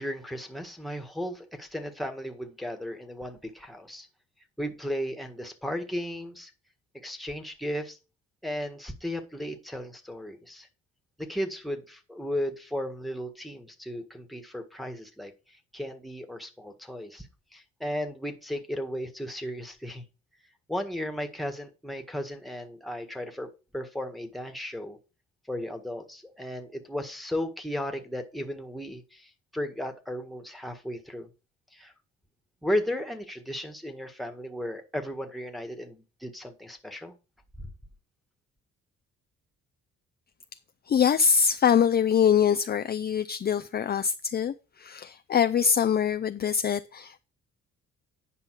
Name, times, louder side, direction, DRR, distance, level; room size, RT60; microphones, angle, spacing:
voice 1, 0.0-4.1 4.6-6.5 7.0-8.0 8.4-10.7 11.2-20.0 20.7-25.0 25.5-31.3 31.7-31.9 32.6-37.1, equal, ahead, 1.7 m, -35 dB
voice 2, 40.9-47.2, left 7 dB, 35° left, 0.4 m, -24 dB
10.0 x 5.5 x 4.8 m
cardioid pair, 90°, 30 cm